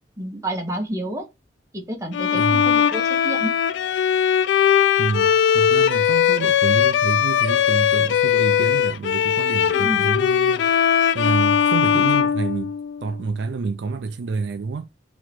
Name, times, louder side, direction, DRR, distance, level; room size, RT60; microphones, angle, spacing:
voice 1, 0.2-1.3 1.7-3.5 9.7-10.1, right 1 dB, 20° right, 1.1 m, -29 dB
Bowed string instrument, 2.1-13.1, left 8 dB, 80° left, 0.3 m, -19 dB
voice 2, 2.3-2.7 5.0-14.8, right 4 dB, 70° right, 0.4 m, -28 dB
3.7 x 3.1 x 4.5 m
head